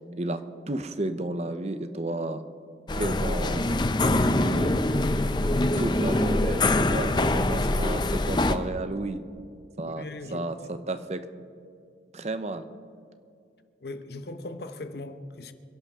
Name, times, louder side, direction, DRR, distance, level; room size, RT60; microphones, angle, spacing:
voice 1, 0.2-2.4 2.9-3.7 4.0-4.8 5.8-9.2 9.8-11.3 12.1-12.7, right 2 dB, 35° right, 0.7 m, -32 dB
sound 1, 2.9-8.5, left 2 dB, 25° left, 0.5 m, -24 dB
voice 2, 9.8-10.5 13.8-15.5, left 2 dB, 60° left, 0.9 m, -39 dB
26.5 x 11.5 x 3.6 m
head